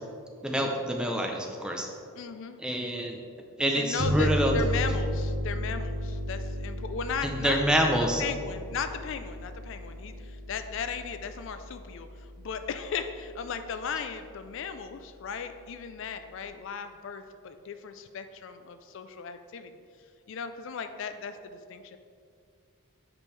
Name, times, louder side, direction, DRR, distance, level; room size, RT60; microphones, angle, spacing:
voice 1, 0.4-1.9 2.6-3.2 3.6-4.6 7.2-8.2, right 1 dB, 5° right, 1 dB, 0.5 m, -27 dB
voice 2, 2.2-2.6 3.7-19.7 20.3-22.0, left 6 dB, 55° left, 9 dB, 0.3 m, -36 dB
sound 1, 4.0-13.3, equal, 45° right, 0.9 m, -34 dB
8.2 x 5.2 x 3.2 m, 2.3 s
head